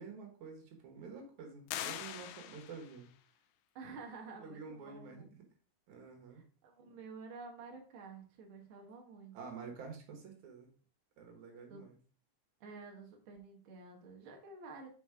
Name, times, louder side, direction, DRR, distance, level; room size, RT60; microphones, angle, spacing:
voice 1, 0.0-3.1 4.4-5.5 5.9-6.4 9.3-10.7 11.2-12.0, right 5 dB, 75° right, 1 dB, 2.8 m, -49 dB
sound 1, 1.7-3.1, left 12 dB, 85° left, 2.0 m, -42 dB
voice 2, 3.7-5.4 6.3-9.4 11.7-11.8 12.6-14.9, right 4 dB, 50° right, 0 dB, 2.0 m, -50 dB
6.1 x 4.5 x 4.8 m, 0.41 s
omnidirectional pair, 3.4 m